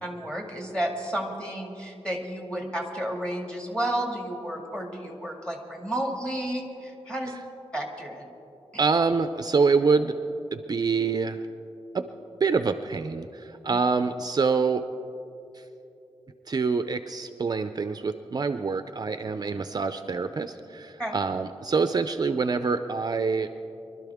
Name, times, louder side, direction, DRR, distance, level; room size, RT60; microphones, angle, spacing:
voice 1, 0.0-7.4 7.7-8.3 21.0-21.2, right 1 dB, 10° left, 1 dB, 2.0 m, -32 dB
voice 2, 8.8-10.2 10.5-11.4 11.9-12.1 12.4-14.8 15.5-15.6 16.5-23.5, right 4 dB, 40° right, 9 dB, 0.4 m, -26 dB
24.0 x 12.0 x 3.5 m, 2.9 s
wide cardioid pair, 130°, 11 cm